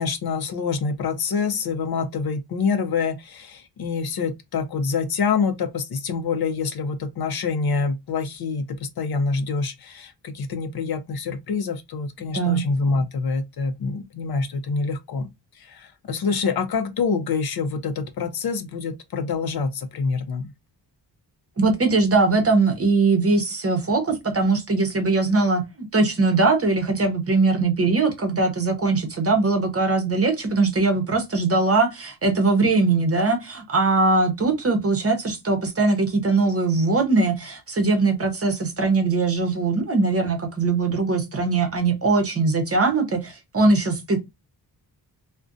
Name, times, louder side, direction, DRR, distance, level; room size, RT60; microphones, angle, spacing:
voice 1, 0.0-15.3 15.5-20.5, left 5 dB, 60° left, 0.5 m, -26 dB
voice 2, 12.2-12.6 21.6-44.2, right 3 dB, 35° right, 0.7 m, -21 dB
2.5 x 2.1 x 2.4 m
cardioid pair, 85°, 42 cm